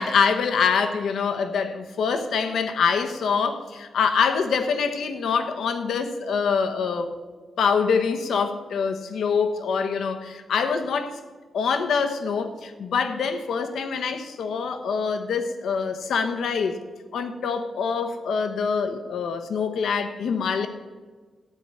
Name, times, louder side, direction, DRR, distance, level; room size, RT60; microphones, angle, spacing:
voice 1, 0.0-7.1 7.6-11.2 11.5-16.8 17.1-20.7, left 5 dB, 90° left, 8 dB, 1.1 m, -25 dB
13.0 x 9.4 x 5.6 m, 1.4 s
wide cardioid pair, 115°, 0 cm